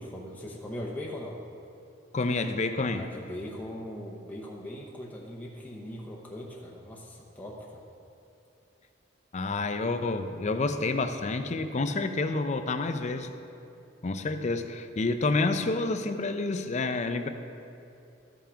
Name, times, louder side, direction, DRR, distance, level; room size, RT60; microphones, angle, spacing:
voice 1, 0.0-1.4 2.9-7.8, left 1 dB, 10° left, -3 dB, 0.7 m, -40 dB
voice 2, 2.1-3.0 9.3-13.3 14.0-17.3, left 3 dB, 40° left, 9 dB, 0.5 m, -29 dB
13.0 x 5.7 x 4.9 m, 2.8 s
head